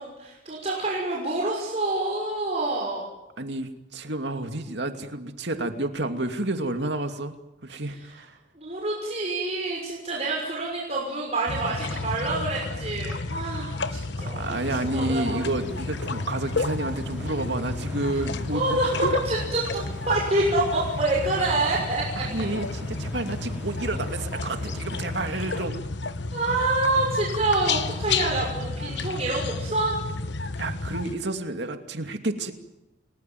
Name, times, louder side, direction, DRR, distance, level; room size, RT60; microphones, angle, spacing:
voice 1, 0.0-3.1 8.5-15.5 18.5-22.4 25.3-25.4 26.3-30.0, right 2 dB, 35° right, -3 dB, 6.1 m, -27 dB
voice 2, 3.4-7.3 7.6-8.3 14.4-18.8 22.2-25.8 30.4-32.5, right 2 dB, 65° right, 6 dB, 2.6 m, -30 dB
sound 1, 11.5-31.1, left 3 dB, 65° left, 1.1 m, -31 dB
sound 2, 14.4-25.7, right 1 dB, 10° right, 5.5 m, -46 dB
30.0 x 20.0 x 9.4 m, 0.95 s
head